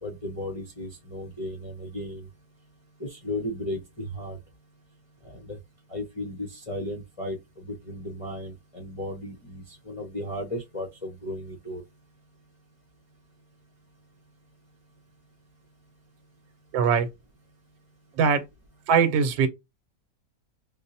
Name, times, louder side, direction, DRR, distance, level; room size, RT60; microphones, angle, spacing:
voice 1, 0.0-2.3 3.0-4.4 5.2-5.6 5.9-11.8, left 1 dB, 40° left, 0.4 m, -35 dB
voice 2, 16.7-17.1 18.1-18.4 18.9-19.5, right 6 dB, 90° right, 1.4 m, -21 dB
5.3 x 2.0 x 2.7 m
omnidirectional pair, 2.0 m